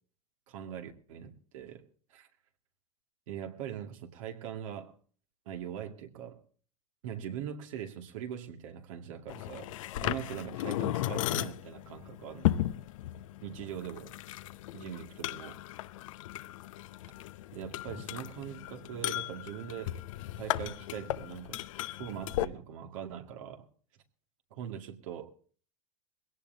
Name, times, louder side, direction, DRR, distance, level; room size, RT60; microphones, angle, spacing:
voice 1, 0.5-2.3 3.3-4.9 5.5-6.4 7.0-9.7 10.0-12.6 13.4-14.1 14.7-15.6 17.5-20.0 20.3-23.7 24.5-25.3, right 9 dB, 70° right, 2.2 m, -42 dB
sound 1, 9.3-22.5, left 14 dB, 70° left, 0.8 m, -36 dB
21.0 x 17.0 x 2.8 m
hypercardioid pair, 105°, 17 cm